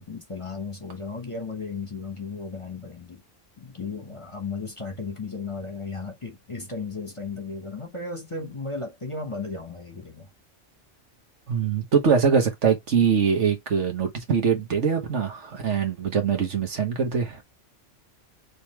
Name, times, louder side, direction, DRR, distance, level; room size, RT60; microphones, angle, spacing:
voice 1, 0.0-3.2 3.6-10.3, left 4 dB, 25° left, 1.1 m, -35 dB
voice 2, 11.5-17.4, right 6 dB, 70° right, 1.6 m, -23 dB
5.3 x 3.2 x 3.1 m
omnidirectional pair, 1.3 m